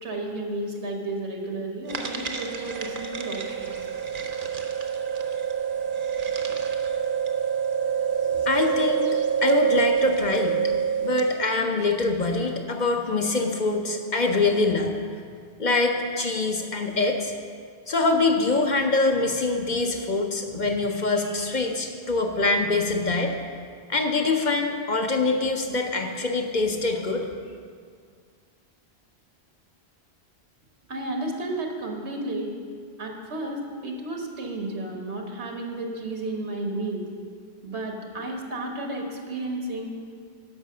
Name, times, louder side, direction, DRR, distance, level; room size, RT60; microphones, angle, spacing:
voice 1, 0.0-3.8 30.9-32.5 33.0-37.0 37.6-39.9, right 2 dB, 90° right, 1 dB, 1.6 m, -32 dB
sound 1, 1.9-11.4, right 8 dB, 55° right, 0.9 m, -27 dB
voice 2, 8.3-10.6 11.0-14.9 15.6-17.3 17.9-23.4 23.9-27.3, left 3 dB, 50° left, 3 dB, 0.9 m, -24 dB
10.5 x 5.9 x 6.6 m, 2.1 s
omnidirectional pair, 1.1 m